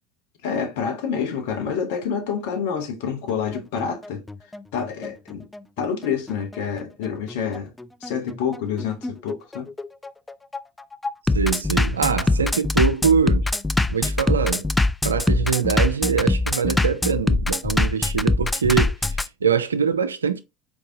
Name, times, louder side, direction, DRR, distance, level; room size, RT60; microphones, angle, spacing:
voice 1, 0.4-4.2 4.7-5.5 5.8-7.7 8.0-9.7, left 7 dB, 70° left, 0.7 m, -27 dB
Bass drum, 3.3-19.3, left 2 dB, 10° left, 0.3 m, -23 dB
voice 2, 11.3-13.4 13.9-14.7 15.0-20.4, right 6 dB, 90° right, 0.3 m, -23 dB
4.5 x 2.7 x 2.6 m
hypercardioid pair, 70°, 0 cm